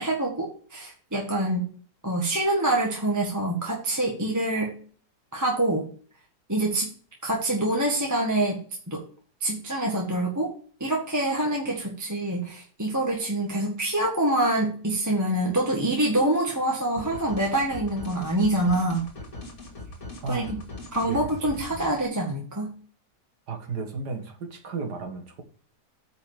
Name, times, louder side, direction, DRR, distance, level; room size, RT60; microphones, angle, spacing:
voice 1, 0.0-1.7 2.0-4.7 5.3-5.8 6.5-6.9 7.2-8.6 8.9-9.0 9.4-10.5 10.8-19.0 20.3-20.6 20.9-22.7, right 1 dB, 10° right, -2 dB, 1.7 m, -25 dB
sound 1, 17.0-22.0, left 2 dB, 60° left, 2.4 m, -40 dB
voice 2, 23.5-25.4, right 4 dB, 90° right, 4 dB, 2.2 m, -33 dB
9.2 x 5.2 x 5.0 m, 0.43 s
omnidirectional pair, 1.7 m